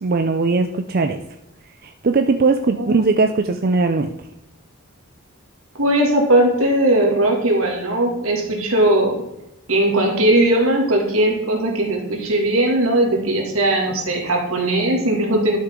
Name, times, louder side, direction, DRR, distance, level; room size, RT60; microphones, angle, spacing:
voice 1, 0.0-1.2 1.8-4.1, right 3 dB, 45° right, 6 dB, 0.4 m, -19 dB
voice 2, 5.8-9.2 9.7-15.6, right 1 dB, 80° right, 0 dB, 2.3 m, -18 dB
12.0 x 6.4 x 3.7 m, 0.87 s
head